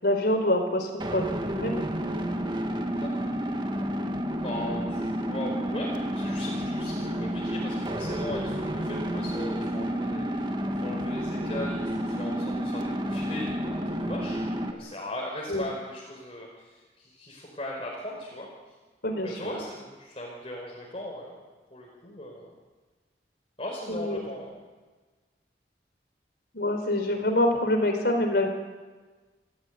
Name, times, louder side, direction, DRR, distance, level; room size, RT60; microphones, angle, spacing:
voice 1, 0.0-1.3 1.5-1.9 15.5-15.6 19.0-19.6 23.9-24.2 26.5-28.5, left 1 dB, 60° left, 5 dB, 4.4 m, -26 dB
sound 1, 1.0-14.7, equal, 25° right, 2.1 m, -30 dB
voice 2, 3.0-3.5 4.4-14.4 14.7-18.5 19.2-21.4 21.7-22.5 23.6-24.5, left 1 dB, 35° left, -2 dB, 5.0 m, -38 dB
29.5 x 14.5 x 9.6 m, 1.3 s
head